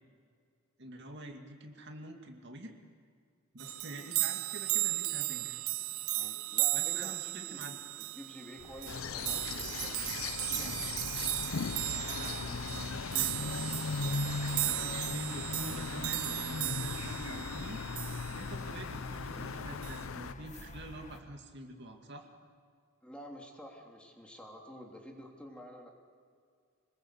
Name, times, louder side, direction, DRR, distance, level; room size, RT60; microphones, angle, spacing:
voice 1, 0.8-2.7 3.5-5.6 6.7-7.8 11.9-13.5 14.5-17.8 18.3-22.3, right 1 dB, 55° right, 3 dB, 2.3 m, -47 dB
sound 1, 3.6-18.6 19.8-20.0, right 17 dB, 85° right, 0.7 m, -36 dB
voice 2, 6.2-7.6 8.0-10.8 14.2-14.5 23.0-25.9, equal, 5° left, 0 dB, 3.1 m, -50 dB
sound 2, 8.6-21.2, left 2 dB, 35° left, 1.6 m, -50 dB
sound 3, 8.9-20.3, left 4 dB, 75° left, 0.7 m, -38 dB
27.0 x 20.5 x 8.2 m, 2.1 s
head